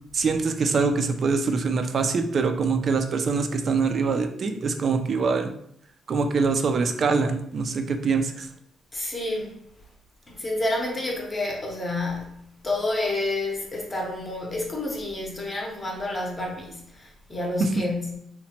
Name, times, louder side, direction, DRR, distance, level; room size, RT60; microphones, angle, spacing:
voice 1, 0.1-5.5 6.1-8.5 17.6-17.8, right 4 dB, 45° right, 0.3 m, -24 dB
voice 2, 8.9-9.6 10.3-18.1, left 2 dB, 20° left, 0.7 m, -29 dB
2.9 x 2.1 x 2.8 m
cardioid pair, 125°, 0 cm